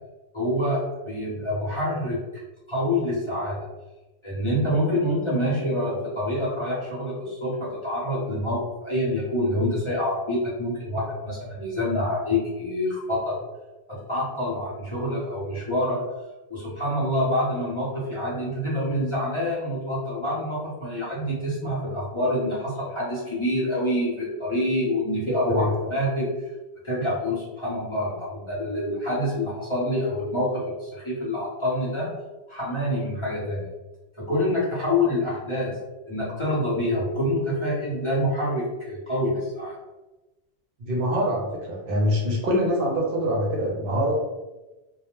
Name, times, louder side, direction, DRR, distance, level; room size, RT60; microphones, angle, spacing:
voice 1, 0.3-2.2 2.7-3.6 4.2-13.4 13.9-16.0 16.5-26.3 26.8-32.1 32.5-33.6 34.3-35.8 36.1-39.7, left 1 dB, 35° left, -8 dB, 0.7 m, -26 dB
voice 2, 40.8-44.1, equal, 60° right, -2 dB, 0.7 m, -24 dB
2.3 x 2.0 x 2.9 m, 1.1 s
omnidirectional pair, 1.1 m